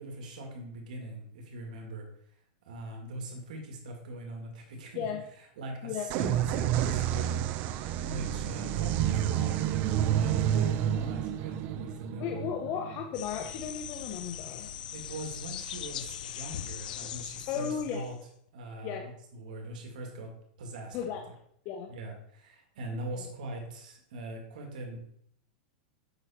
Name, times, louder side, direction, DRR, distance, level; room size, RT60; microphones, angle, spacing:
voice 1, 0.0-2.1 2.7-5.1 5.4-7.4 8.0-9.6 10.0-12.6 14.9-18.1 18.5-20.3 20.6-21.2 21.9-25.0, right 1 dB, 80° right, 2 dB, 2.0 m, -41 dB
sound 1, 6.1-13.7, right 11 dB, 40° right, 0.5 m, -29 dB
voice 2, 12.2-14.7 17.5-18.0 18.8-19.0 20.9-21.2 21.6-21.9 23.1-23.2, left 8 dB, 40° left, 3 dB, 0.8 m, -35 dB
sound 2, 13.1-18.2, left 11 dB, 85° left, 0.5 m, -40 dB
8.0 x 5.7 x 4.2 m, 0.68 s
supercardioid pair, 145°, 4 cm